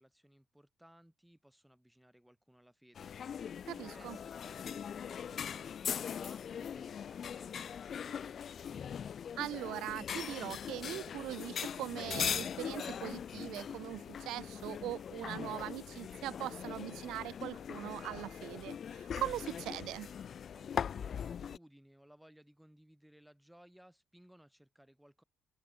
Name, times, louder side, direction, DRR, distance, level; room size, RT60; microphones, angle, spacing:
voice 1, 0.0-3.1 3.7-8.8 20.5-25.2, equal, 5° right, 7.0 m, -61 dB
sound 1, 2.9-21.6, left 8 dB, 55° left, 1.2 m, -41 dB
voice 2, 3.7-4.2 9.4-20.1, right 15 dB, 90° right, 0.4 m, -41 dB
open air
cardioid pair, 90°, 0 cm